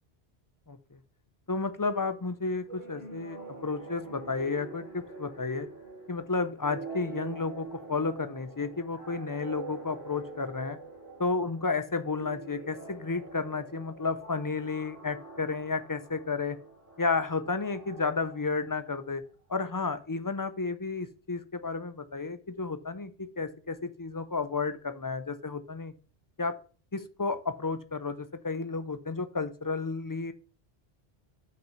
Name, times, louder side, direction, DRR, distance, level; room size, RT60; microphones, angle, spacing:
voice 1, 1.5-5.7 6.1-10.8 11.2-16.6 17.0-19.2 19.5-25.9 26.4-26.5 26.9-30.3, left 4 dB, 25° left, 11 dB, 0.5 m, -32 dB
sound 1, 2.7-19.1, right 4 dB, 55° left, 2.8 m, -45 dB
6.1 x 6.0 x 5.6 m, 0.39 s
omnidirectional pair, 1.1 m